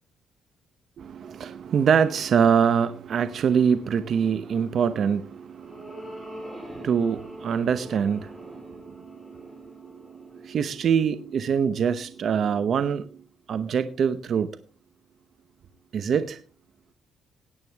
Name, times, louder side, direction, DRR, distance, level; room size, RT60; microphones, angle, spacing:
voice 1, 1.0-13.2 13.5-14.5 15.9-16.4, right 7 dB, 60° right, 11 dB, 0.9 m, -25 dB
sound 1, 5.0-11.5, equal, 5° left, 5.3 m, -44 dB
17.5 x 9.0 x 3.5 m, 0.39 s
cardioid pair, 90°, 0 cm